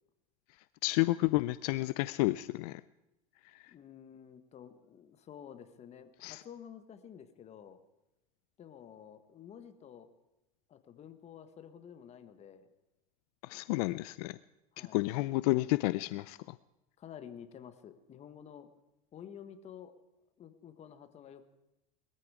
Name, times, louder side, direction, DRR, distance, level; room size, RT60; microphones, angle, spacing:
voice 1, 0.8-2.8 3.5-3.6 6.2-6.4 13.4-14.4 14.8-16.6, left 20 dB, 75° left, 16 dB, 0.5 m, -31 dB
voice 2, 3.7-7.8 8.6-10.1 10.7-12.7 14.7-15.0 17.0-18.7 19.1-19.9 20.4-21.5, left 8 dB, 35° left, 10 dB, 1.4 m, -51 dB
20.5 x 14.0 x 4.9 m, 0.93 s
supercardioid pair, 125°, 20 cm